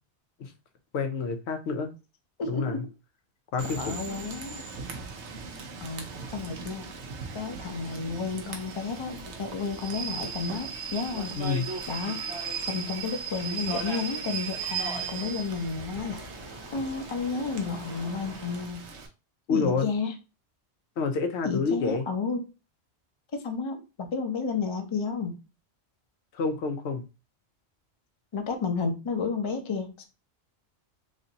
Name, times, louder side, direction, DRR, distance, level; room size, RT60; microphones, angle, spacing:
voice 1, 0.9-1.9 2.5-2.8 3.5-4.0 11.4-11.7 19.5-19.9 21.0-22.0 26.3-27.0, left 4 dB, 75° left, 0.9 m, -28 dB
voice 2, 2.4-2.9 3.8-4.6 5.8-6.1 6.3-6.9 7.3-11.4 11.9-12.2 12.7-16.2 16.7-18.9 19.5-20.1 21.4-22.5 23.3-25.4 28.3-30.1, left 4 dB, 30° left, 0.6 m, -32 dB
Rain / Train, 3.6-19.1, right 6 dB, 80° right, 1.1 m, -38 dB
sound 1, 9.7-12.6 13.0-18.7, right 1 dB, 25° right, 0.9 m, -41 dB
3.2 x 2.7 x 3.9 m
omnidirectional pair, 1.1 m